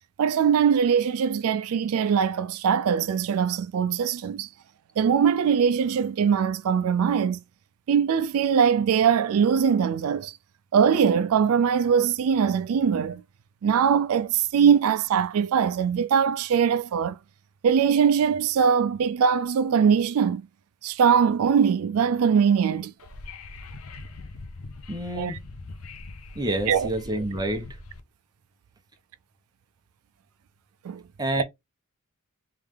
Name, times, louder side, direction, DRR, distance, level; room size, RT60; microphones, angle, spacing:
voice 1, 0.2-4.5 5.0-7.4 7.9-10.4 10.7-13.2 13.6-17.2 17.6-20.4 20.8-22.9 25.1-25.4 26.7-26.9 30.8-31.0, right 7 dB, 80° right, 0.3 m, -22 dB
Wind / Subway metro underground, 23.0-28.0, left 3 dB, 75° left, 0.7 m, -42 dB
voice 2, 24.9-25.4 26.4-27.6 31.2-31.4, right 1 dB, 20° right, 0.9 m, -28 dB
3.6 x 3.2 x 3.3 m
head